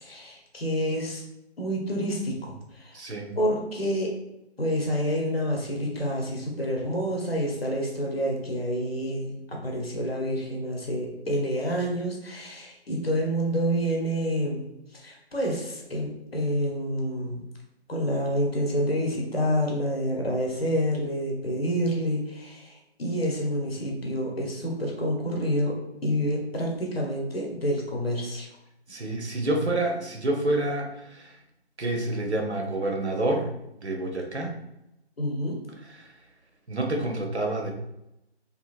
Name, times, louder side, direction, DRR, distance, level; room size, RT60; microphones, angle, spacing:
voice 1, 0.0-1.2 1.6-3.0 3.3-4.1 4.6-14.6 14.9-17.4 17.9-25.7 26.0-28.5 35.2-35.6, equal, 60° left, -1 dB, 0.8 m, -28 dB
voice 2, 2.9-3.3 28.9-31.3 31.8-33.5 33.8-34.6 36.0-36.1 36.7-37.7, right 2 dB, 80° right, 2 dB, 0.7 m, -28 dB
2.8 x 2.5 x 2.4 m, 0.86 s
figure-of-eight pair, 160°, 33 cm